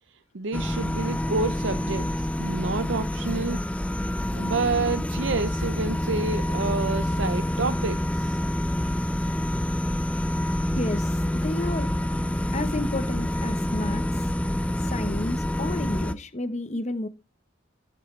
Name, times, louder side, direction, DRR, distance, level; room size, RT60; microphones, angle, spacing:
voice 1, 0.3-3.6 4.3-8.4, right 3 dB, 70° right, 0.6 m, -29 dB
sound 1, 0.5-16.1, left 1 dB, 5° left, 0.4 m, -27 dB
voice 2, 10.7-11.9 12.5-14.0 14.8-17.1, left 1 dB, 35° left, 0.9 m, -31 dB
15.0 x 7.7 x 3.2 m
head